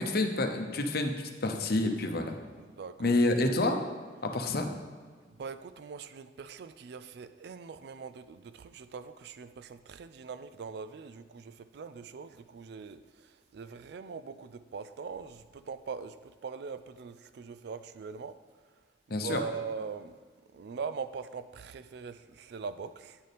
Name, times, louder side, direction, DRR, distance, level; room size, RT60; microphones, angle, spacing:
voice 1, 0.0-2.3 3.0-3.8 4.2-4.7 19.1-19.4, left 2 dB, 55° left, 5 dB, 0.7 m, -28 dB
voice 2, 2.6-3.5 5.3-18.4 19.1-20.2 20.5-23.2, right 5 dB, 65° right, 13 dB, 0.4 m, -42 dB
9.0 x 6.7 x 3.4 m, 1.5 s
head